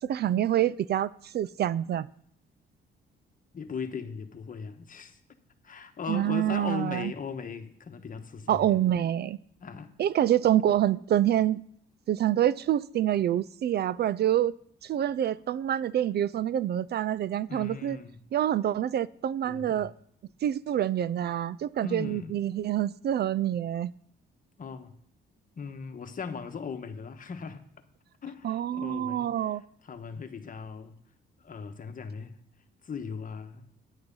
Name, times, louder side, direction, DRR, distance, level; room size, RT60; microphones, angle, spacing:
voice 1, 0.1-2.1 6.1-7.1 8.5-9.4 10.0-11.6 12.1-14.5 14.8-18.0 18.3-19.9 20.4-23.9 28.4-29.6, right 11 dB, 55° right, 0.4 m, -26 dB
voice 2, 3.5-5.2 5.6-8.9 9.6-9.9 17.5-18.2 19.4-19.9 21.8-22.4 24.6-25.0 25.6-27.6 28.2-31.0 31.4-32.4 32.8-33.7, left 5 dB, 45° left, 1.3 m, -38 dB
10.0 x 7.8 x 5.4 m
cardioid pair, 90°, 20 cm